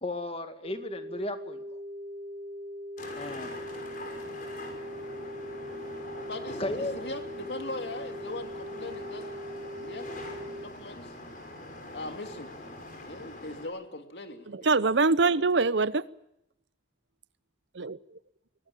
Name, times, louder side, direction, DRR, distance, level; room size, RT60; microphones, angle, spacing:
voice 1, 0.0-1.7 3.2-3.5 6.6-7.0, left 2 dB, 35° left, 8 dB, 2.1 m, -34 dB
sound 1, 0.6-10.6, equal, 70° right, 4.1 m, -41 dB
sound 2, 3.0-13.7, left 1 dB, 50° left, 5.9 m, -43 dB
voice 2, 6.3-9.3 9.8-10.1 10.6-11.1 11.9-12.5 13.0-14.7 15.4-15.5, left 2 dB, 70° left, 6 dB, 2.8 m, -40 dB
voice 3, 14.5-16.0 17.7-18.2, right 3 dB, 90° right, 18 dB, 0.8 m, -24 dB
24.0 x 19.0 x 7.5 m, 0.81 s
head